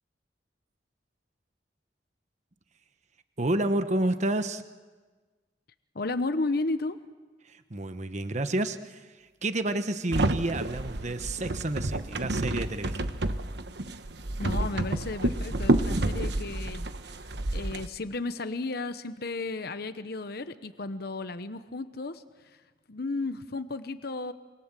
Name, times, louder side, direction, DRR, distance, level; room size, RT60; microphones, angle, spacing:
voice 1, 3.4-4.6 7.4-13.1, right 1 dB, 40° right, 10 dB, 1.1 m, -30 dB
voice 2, 5.9-7.0 14.4-22.6 22.9-24.3, left 3 dB, 60° left, 10 dB, 1.0 m, -34 dB
sound 1, 10.1-17.9, right 1 dB, 70° right, 1.2 m, -29 dB
27.0 x 25.0 x 7.6 m, 1.4 s
head